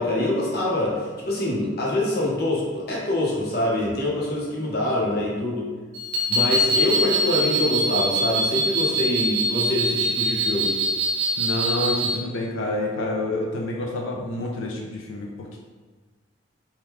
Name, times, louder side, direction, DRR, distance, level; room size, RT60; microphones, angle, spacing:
voice 1, 0.0-5.7 6.3-10.8, left 1 dB, 50° left, -4 dB, 0.7 m, -25 dB
sound 1, 5.9-12.2, right 1 dB, 30° right, 0.5 m, -23 dB
voice 2, 11.4-15.6, left 1 dB, 85° left, 0 dB, 0.4 m, -28 dB
3.4 x 2.2 x 3.0 m, 1.4 s
head